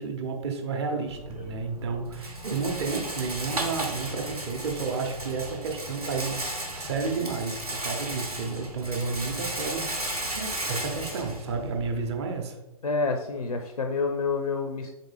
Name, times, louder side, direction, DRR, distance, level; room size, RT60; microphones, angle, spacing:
voice 1, 0.0-12.6, right 4 dB, 45° right, 3 dB, 0.9 m, -31 dB
Rattle, 1.1-12.1, right 1 dB, 85° right, 0.9 m, -35 dB
voice 2, 12.8-14.9, left 4 dB, 85° left, 4 dB, 0.5 m, -28 dB
4.1 x 3.8 x 3.4 m, 0.95 s
figure-of-eight pair, 115°, 19 cm